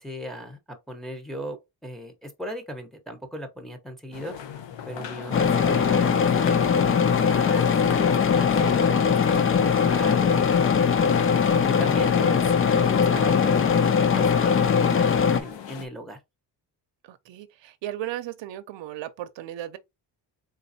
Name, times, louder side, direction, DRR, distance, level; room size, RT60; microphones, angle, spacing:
voice 1, 0.0-4.4 4.9-10.5 11.0-16.2, equal, ahead, 0.9 m, -37 dB
sound 1, 4.1-15.9, left 8 dB, 75° left, 0.9 m, -38 dB
sound 2, 5.3-15.4, left 6 dB, 30° left, 0.4 m, -21 dB
voice 2, 17.0-19.8, right 13 dB, 80° right, 0.6 m, -36 dB
3.9 x 3.8 x 2.7 m
wide cardioid pair, 160°, 44 cm